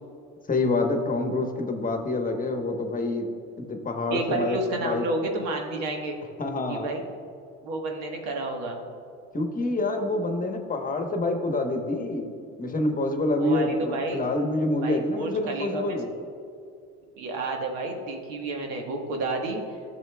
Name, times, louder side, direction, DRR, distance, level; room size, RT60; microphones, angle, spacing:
voice 1, 0.5-3.3 3.6-5.1 6.4-6.9 9.3-12.3 12.6-16.1, left 2 dB, 25° left, 4 dB, 1.1 m, -27 dB
voice 2, 4.1-6.2 6.7-7.0 7.6-8.8 13.4-14.2 14.8-16.0 17.2-19.6, right 2 dB, 80° right, 2 dB, 1.4 m, -30 dB
12.0 x 6.8 x 2.3 m, 2.5 s
supercardioid pair, 80°, 31 cm